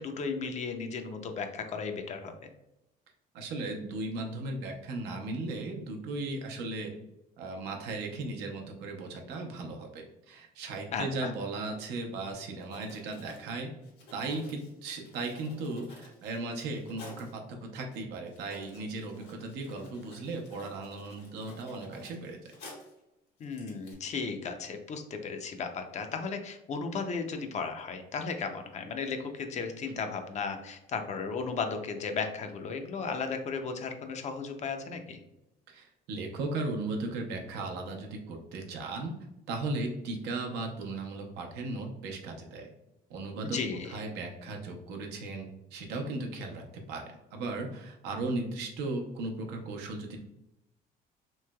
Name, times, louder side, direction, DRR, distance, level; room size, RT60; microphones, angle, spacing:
voice 1, 0.0-2.3 10.9-11.3 23.4-35.2 43.4-43.9, left 5 dB, 45° left, 6 dB, 0.5 m, -35 dB
voice 2, 3.3-6.9 7.4-13.7 14.1-22.4 35.7-39.1 39.5-42.7 43.1-43.6 43.8-50.2, right 2 dB, 85° right, 2 dB, 0.7 m, -36 dB
Writing, 12.6-17.3 17.9-18.0 18.3-23.0 23.4-23.9, left 2 dB, 80° left, 1.0 m, -52 dB
3.1 x 2.9 x 2.2 m, 0.87 s
cardioid pair, 110°, 17 cm